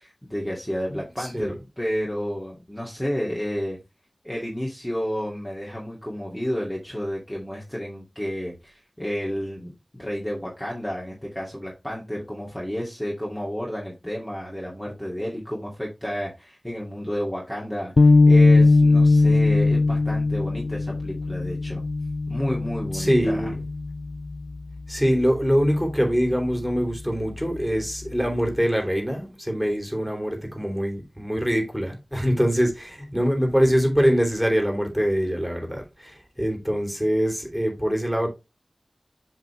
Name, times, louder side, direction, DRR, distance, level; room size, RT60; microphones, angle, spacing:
voice 1, 0.0-3.8 4.2-21.8 22.3-23.5 30.1-30.4, equal, 10° left, 2.4 m, -31 dB
voice 2, 0.9-1.5 22.9-23.6 24.9-38.3, equal, 5° right, 3.3 m, -24 dB
sound 1, 18.0-24.4, left 3 dB, 80° left, 0.3 m, -19 dB
7.9 x 5.0 x 3.3 m
wide cardioid pair, 45°, 0 cm